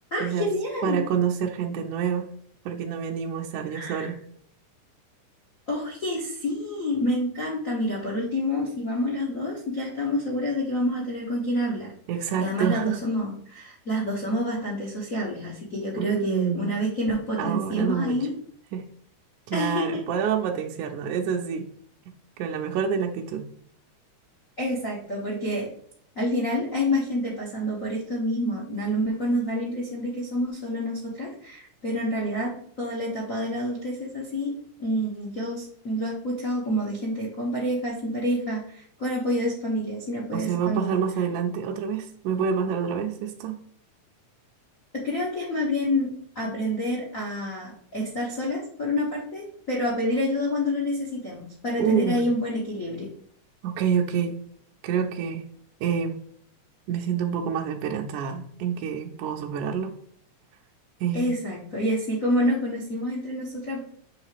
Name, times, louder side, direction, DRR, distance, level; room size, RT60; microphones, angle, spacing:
voice 1, 0.1-1.0 3.7-4.1 5.7-11.9 12.4-18.3 19.5-20.0 24.6-25.7 26.1-32.5 32.8-34.5 34.8-41.0 44.9-53.1 61.1-63.8, left 1 dB, 65° left, -3 dB, 0.8 m, -28 dB
voice 2, 0.8-2.3 2.7-4.2 12.1-13.0 16.0-16.7 17.4-18.2 18.7-18.8 19.5-21.7 22.4-23.5 40.3-43.6 51.8-52.3 53.6-54.4 54.8-55.5 55.8-56.2 56.9-59.9 61.0-61.4, right 7 dB, 75° right, 1 dB, 2.0 m, -27 dB
7.3 x 3.3 x 4.9 m, 0.63 s
omnidirectional pair, 3.8 m